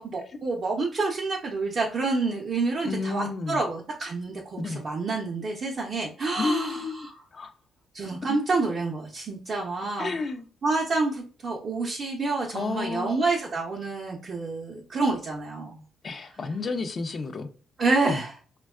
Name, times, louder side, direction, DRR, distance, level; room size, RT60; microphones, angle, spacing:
voice 1, 0.0-6.8 7.9-10.1 10.6-15.8 17.8-18.3, right 3 dB, 50° right, 0.5 m, -28 dB
voice 2, 2.8-3.6 4.6-4.8 6.4-7.1 7.3-7.5 8.3-8.4 10.0-10.5 12.5-13.2 16.0-17.5 18.1-18.2, left 4 dB, 40° left, 0.4 m, -31 dB
3.4 x 2.2 x 2.2 m
cardioid pair, 90°, 0 cm